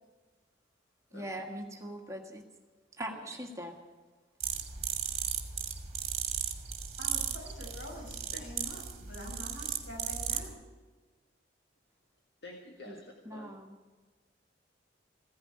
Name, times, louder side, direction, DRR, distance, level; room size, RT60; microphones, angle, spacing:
voice 1, 1.1-2.5 3.0-3.8 12.8-13.0 13.2-13.8, right 1 dB, 15° right, 2 dB, 1.6 m, -41 dB
sound 1, 4.4-10.5, right 8 dB, 35° right, 1.7 m, -36 dB
voice 2, 7.0-10.5, left 1 dB, 90° left, -1 dB, 6.7 m, -45 dB
voice 3, 12.4-13.5, left 2 dB, 55° left, 0 dB, 1.8 m, -48 dB
15.5 x 10.5 x 8.6 m, 1.4 s
head